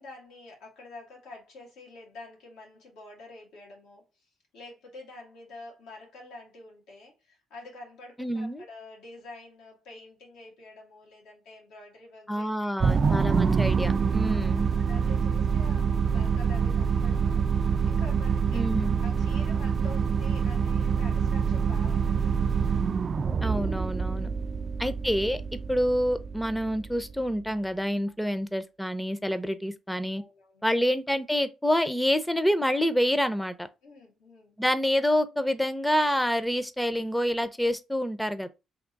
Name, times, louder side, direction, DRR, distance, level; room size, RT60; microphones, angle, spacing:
voice 1, 0.0-12.7 14.2-18.7 19.0-22.3 24.3-24.7 28.0-28.1 30.1-30.7 33.8-34.6, left 2 dB, 90° left, 1.8 m, -48 dB
voice 2, 8.2-8.6 12.3-14.7 18.5-19.0 23.4-24.3 24.8-25.4 25.7-30.2 30.6-33.7 34.6-38.5, equal, 5° left, 0.5 m, -27 dB
sound 1, 12.8-27.3, right 6 dB, 40° right, 0.3 m, -26 dB
3.5 x 2.8 x 3.9 m
cardioid pair, 90°, 0 cm